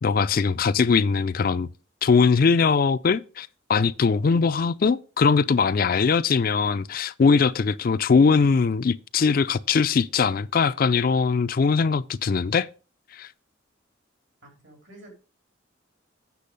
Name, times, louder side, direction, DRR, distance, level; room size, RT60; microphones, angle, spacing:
voice 1, 0.0-1.7 2.0-12.7 13.1-13.3, left 5 dB, 50° left, 0.4 m, -21 dB
voice 2, 14.4-15.1, right 1 dB, 75° right, 3.8 m, -50 dB
8.4 x 6.2 x 5.2 m
head